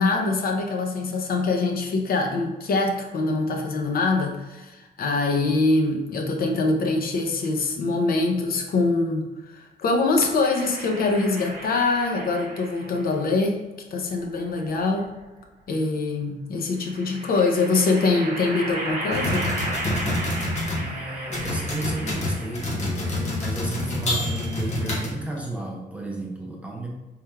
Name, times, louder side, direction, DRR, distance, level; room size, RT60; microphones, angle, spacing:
voice 1, 0.0-13.6 13.9-15.1 15.7-19.5, left 3 dB, 55° left, 2 dB, 0.5 m, -24 dB
sound 1, 10.4-13.1 14.2-15.2 16.8-22.8, right 1 dB, 40° right, 1.1 m, -34 dB
sound 2, 19.1-20.8 21.3-25.4, left 1 dB, 40° left, 0.9 m, -27 dB
voice 2, 20.8-26.9, right 1 dB, 5° right, -2 dB, 0.5 m, -33 dB
3.2 x 2.3 x 4.4 m, 1.1 s
wide cardioid pair, 160°, 18 cm